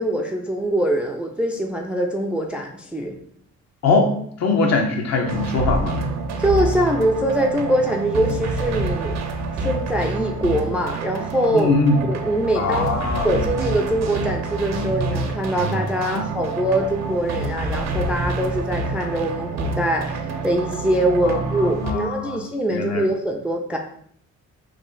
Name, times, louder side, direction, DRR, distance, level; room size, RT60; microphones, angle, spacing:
voice 1, 0.0-3.2 6.4-9.2 9.5-11.7 12.1-12.9 13.2-23.8, right 1 dB, 5° right, 2 dB, 0.3 m, -23 dB
voice 2, 3.8-4.1 4.4-6.0 11.5-12.0 12.6-13.5 16.1-16.2 21.2-21.4 21.8-22.4 22.7-23.0, left 3 dB, 60° left, 3 dB, 0.8 m, -21 dB
sound 1, 5.2-21.9, right 2 dB, 65° right, 0.6 m, -27 dB
3.2 x 2.1 x 3.7 m, 0.64 s
cardioid pair, 90°, 30 cm